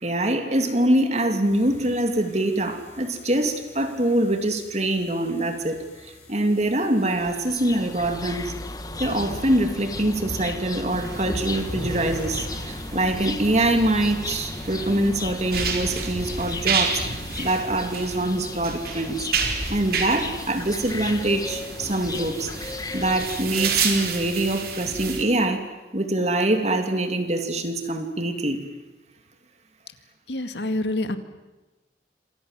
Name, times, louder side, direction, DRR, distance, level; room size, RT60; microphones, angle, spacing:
voice 1, 0.0-5.8 6.3-8.5 9.0-19.3 19.7-25.6 25.9-28.6, right 1 dB, 40° right, 6 dB, 2.9 m, -24 dB
sound 1, 1.4-13.7, equal, 40° left, 5.4 m, -41 dB
sound 2, 7.0-23.9, left 2 dB, 20° left, 1.7 m, -36 dB
sound 3, 10.9-25.2, right 5 dB, 55° right, 4.2 m, -31 dB
voice 2, 30.3-31.2, left 1 dB, 75° left, 9 dB, 2.1 m, -26 dB
27.5 x 27.0 x 7.6 m, 1.1 s
head